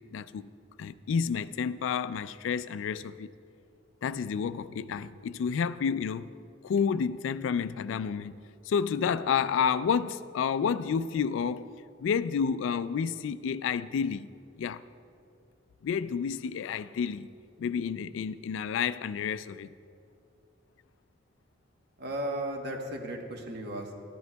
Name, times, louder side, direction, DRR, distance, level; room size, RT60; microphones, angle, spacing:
voice 1, 0.1-0.5 0.8-3.3 4.0-6.3 6.6-8.3 8.7-11.7 12.0-14.3 14.6-14.8 15.8-17.3 17.6-19.7, left 6 dB, 90° left, 0.3 m, -30 dB
voice 2, 22.0-24.0, right 1 dB, 55° right, 1.1 m, -35 dB
13.5 x 11.0 x 2.2 m
head